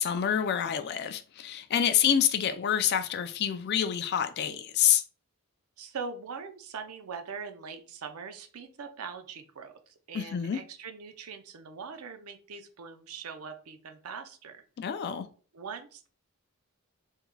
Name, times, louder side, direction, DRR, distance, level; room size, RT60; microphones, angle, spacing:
voice 1, 0.0-5.0 10.1-10.6 14.8-15.3, left 9 dB, 50° left, 0.3 m, -27 dB
voice 2, 5.8-14.6 15.5-16.1, right 5 dB, 80° right, 0.5 m, -42 dB
3.6 x 3.1 x 2.2 m
head